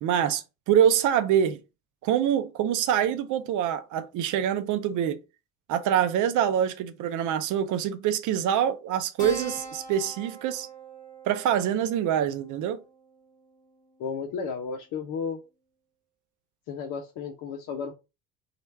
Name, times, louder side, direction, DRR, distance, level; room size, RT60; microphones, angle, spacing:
voice 1, 0.0-1.6 2.0-5.2 5.7-10.7 11.3-12.8, right 9 dB, 45° right, 0.6 m, -25 dB
Keyboard (musical), 9.2-14.2, right 3 dB, 20° left, 1.2 m, -43 dB
voice 2, 14.0-15.4 16.7-17.9, left 6 dB, 50° left, 0.8 m, -33 dB
3.1 x 2.4 x 4.3 m
figure-of-eight pair, 50°, 42 cm